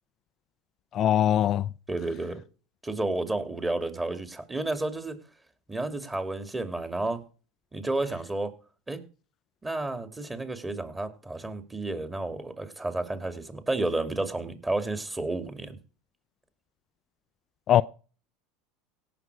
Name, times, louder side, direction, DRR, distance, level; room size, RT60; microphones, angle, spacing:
voice 1, 0.9-1.7 17.7-17.8, left 11 dB, 45° left, 0.5 m, -21 dB
voice 2, 1.9-2.4 2.8-5.2 5.7-7.2 7.7-8.5 8.9-9.0 9.6-15.8, right 2 dB, 15° right, 2.5 m, -31 dB
17.5 x 6.1 x 4.8 m
hypercardioid pair, 90°, 0 cm